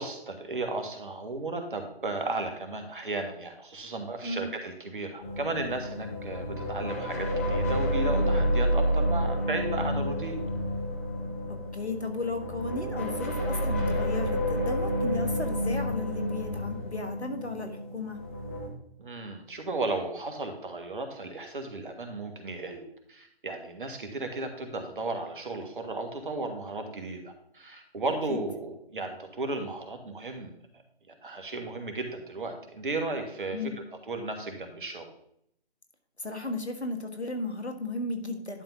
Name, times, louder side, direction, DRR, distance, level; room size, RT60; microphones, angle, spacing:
voice 1, 0.0-10.4 19.0-30.5 31.2-33.7 34.1-35.1, right 3 dB, 50° right, 5 dB, 1.6 m, -35 dB
sound 1, 5.2-18.7, equal, 15° left, 0.7 m, -29 dB
voice 2, 11.5-18.2 28.3-28.4 33.5-33.8 36.2-38.6, left 2 dB, 85° left, 5 dB, 1.6 m, -35 dB
11.0 x 3.6 x 5.7 m, 0.70 s
figure-of-eight pair, 145°, 32 cm